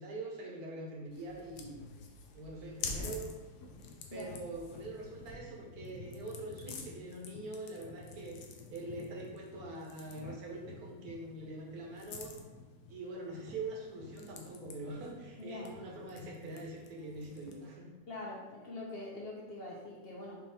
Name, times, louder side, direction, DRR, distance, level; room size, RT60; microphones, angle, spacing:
voice 1, 0.0-1.8 2.3-3.2 4.1-8.4 8.7-12.3 12.9-17.9, right 2 dB, 70° right, -1 dB, 1.4 m, -44 dB
sound 1, 1.1-17.7, left 4 dB, 80° left, 1.1 m, -48 dB
voice 2, 15.4-15.7 18.1-20.4, left 2 dB, 60° left, -2 dB, 0.6 m, -44 dB
5.0 x 3.0 x 3.4 m, 1.2 s
omnidirectional pair, 1.7 m